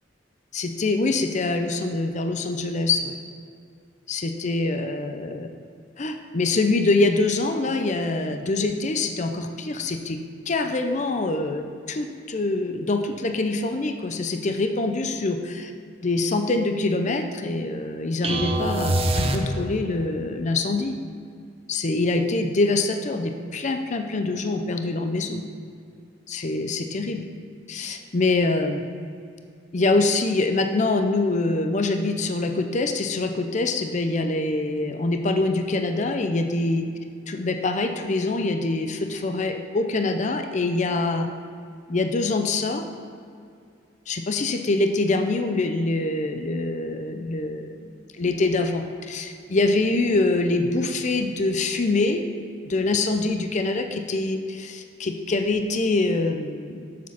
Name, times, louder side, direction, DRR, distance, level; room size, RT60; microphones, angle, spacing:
voice 1, 0.5-3.2 4.1-5.5 6.0-10.2 10.5-11.6 11.9-15.7 16.0-21.0 21.7-25.4 26.3-27.2 27.7-28.8 29.7-36.9 37.3-41.3 41.9-42.8 44.1-52.2 52.6-56.9, left 2 dB, 40° left, 6 dB, 0.5 m, -24 dB
sound 1, 18.2-20.0, right 1 dB, 30° right, 0.6 m, -24 dB
7.4 x 6.2 x 5.7 m, 2.3 s
head